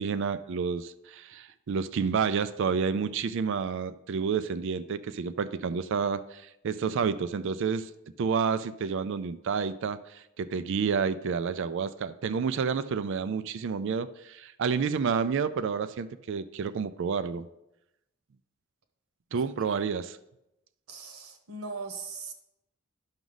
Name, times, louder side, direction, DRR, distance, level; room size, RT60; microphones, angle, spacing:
voice 1, 0.0-7.9 8.2-17.5 19.3-20.2, right 6 dB, 60° right, 13 dB, 0.4 m, -29 dB
voice 2, 19.3-19.8 20.9-22.3, right 4 dB, 90° right, 5 dB, 1.2 m, -40 dB
10.5 x 6.1 x 3.9 m, 0.87 s
head